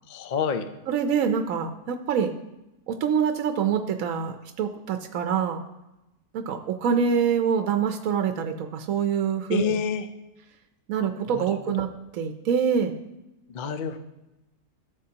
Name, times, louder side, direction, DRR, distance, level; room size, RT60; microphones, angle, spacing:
voice 1, 0.1-0.7 9.5-10.0 11.3-11.5 13.5-14.0, left 6 dB, 80° left, 9 dB, 0.4 m, -27 dB
voice 2, 0.9-2.3 2.9-5.6 6.3-9.7 10.9-11.9 12.1-12.9, right 7 dB, 65° right, 6 dB, 1.0 m, -25 dB
14.0 x 7.1 x 2.9 m, 0.94 s
omnidirectional pair, 1.7 m